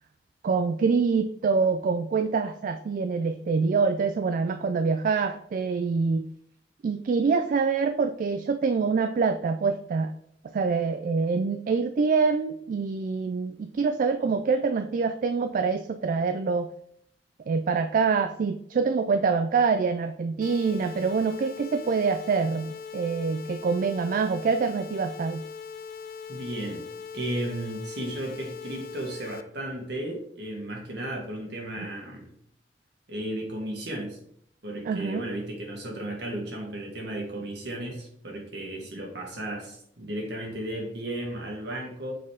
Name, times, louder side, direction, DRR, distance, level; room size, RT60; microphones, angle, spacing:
voice 1, 0.4-6.3 6.8-10.1 10.5-16.7 17.5-25.4 31.8-31.9 34.9-35.2, right 5 dB, 50° right, 8 dB, 0.3 m, -25 dB
sound 1, 20.4-29.4, left 6 dB, 55° left, 0.4 m, -40 dB
voice 2, 26.3-26.8 27.1-32.3 33.1-34.2 34.6-42.1, right 1 dB, 65° right, -1 dB, 1.9 m, -34 dB
7.5 x 4.1 x 3.6 m, 0.68 s
head